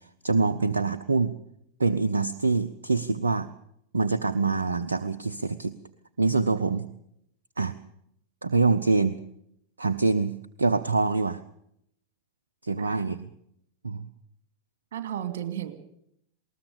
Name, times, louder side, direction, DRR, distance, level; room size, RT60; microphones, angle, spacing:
voice 1, 0.2-1.3 1.8-3.5 3.9-5.7 6.2-6.9 7.6-7.7 8.4-9.2 9.8-11.4 12.6-13.3 13.8-14.1, right 4 dB, 75° right, 11 dB, 0.7 m, -25 dB
voice 2, 12.7-13.0 14.9-15.7, right 11 dB, 55° right, 9 dB, 2.4 m, -34 dB
20.0 x 19.5 x 6.9 m, 0.75 s
figure-of-eight pair, 90°, 0 cm